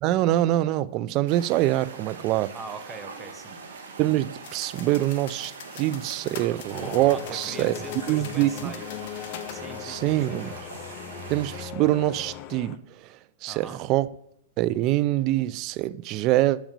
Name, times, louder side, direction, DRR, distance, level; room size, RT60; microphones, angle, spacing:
voice 1, 0.0-2.5 4.0-7.7 8.1-8.7 9.8-10.5 11.3-14.1 14.6-16.6, right 15 dB, 40° right, 0.4 m, -25 dB
sound 1, 1.3-11.7, right 4 dB, 75° right, 1.5 m, -42 dB
voice 2, 2.5-3.6 7.0-8.9 9.5-10.5 13.5-13.8, right 4 dB, 15° right, 0.8 m, -42 dB
sound 2, 4.4-9.6, left 8 dB, 55° left, 1.0 m, -44 dB
sound 3, 6.7-12.8, left 11 dB, 40° left, 0.4 m, -39 dB
6.2 x 5.0 x 6.6 m
hypercardioid pair, 130°, 0 cm